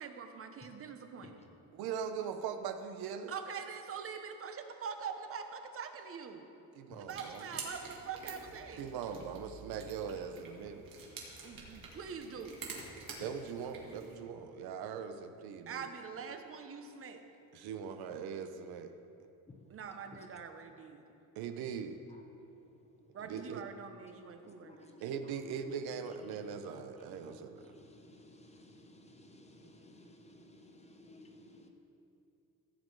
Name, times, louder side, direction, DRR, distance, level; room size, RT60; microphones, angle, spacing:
voice 1, 0.0-1.4 3.3-6.5 7.0-8.8 11.4-12.6 15.7-17.2 19.7-21.0 23.1-24.9, right 6 dB, 35° right, 7 dB, 0.9 m, -44 dB
voice 2, 1.7-3.3 6.8-7.5 8.8-10.8 13.2-15.9 17.5-18.9 21.4-22.0 23.2-23.6 25.0-27.7, right 7 dB, 80° right, 8 dB, 0.8 m, -40 dB
sound 1, 7.1-14.2, right 4 dB, 65° right, 2.2 m, -48 dB
voice 3, 24.6-25.0 27.2-31.7, left 1 dB, 20° left, 4 dB, 0.8 m, -57 dB
15.5 x 7.7 x 4.7 m, 2.8 s
cardioid pair, 155°, 37 cm